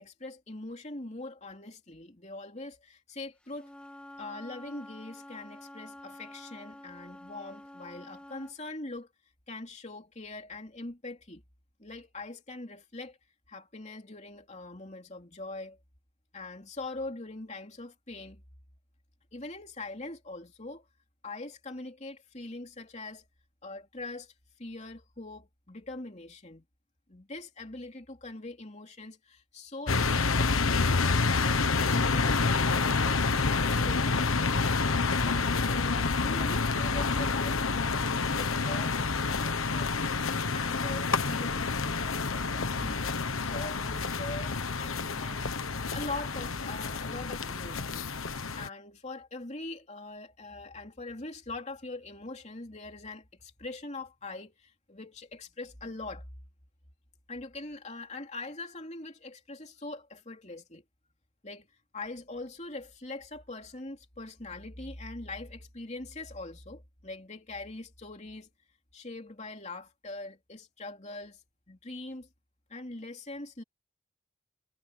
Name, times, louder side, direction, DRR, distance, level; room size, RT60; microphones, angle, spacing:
voice 1, 0.0-3.7 4.2-9.1 9.5-11.4 11.8-13.2 13.5-15.8 16.3-18.4 19.3-20.9 21.2-23.2 23.6-24.3 24.6-26.6 27.1-34.5 35.2-40.0 40.5-43.1 43.4-45.4 45.9-56.3 57.3-60.8 61.4-61.7 61.9-68.5 68.9-71.4 71.7-72.3 72.7-73.6, left 2 dB, 35° left, 3.1 m, -42 dB
Wind instrument woodwind instrument, 3.5-8.6, left 1 dB, 5° left, 2.6 m, -48 dB
sound 1, 29.9-48.7, left 4 dB, 80° left, 1.3 m, -28 dB
head